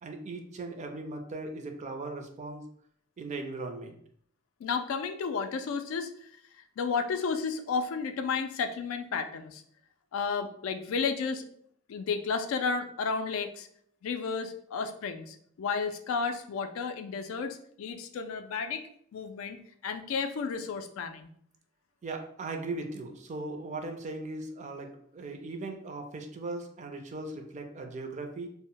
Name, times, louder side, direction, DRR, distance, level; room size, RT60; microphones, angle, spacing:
voice 1, 0.0-2.6 3.2-4.0 22.0-28.5, right 2 dB, 35° right, 4 dB, 0.4 m, -38 dB
voice 2, 4.6-6.3 6.8-9.6 10.1-11.4 11.9-13.7 14.0-21.3, left 5 dB, 90° left, 7 dB, 0.3 m, -32 dB
2.1 x 2.0 x 3.6 m, 0.65 s
head